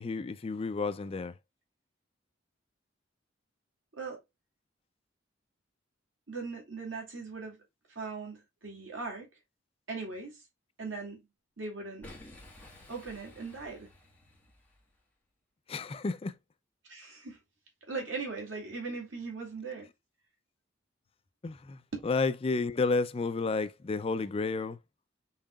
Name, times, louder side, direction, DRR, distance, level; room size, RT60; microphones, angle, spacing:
voice 1, 0.0-1.3 15.7-16.3 21.4-24.8, left 3 dB, 30° left, 0.4 m, -31 dB
voice 2, 6.3-7.6 8.0-9.3 9.9-10.4 10.8-11.2 11.6-12.1 12.9-13.9 16.9-17.4 17.9-19.9 21.9-22.0, right 4 dB, 85° right, 2.4 m, -39 dB
Boom, 12.0-15.0, left 1 dB, 10° left, 1.6 m, -52 dB
5.7 x 3.7 x 2.3 m
head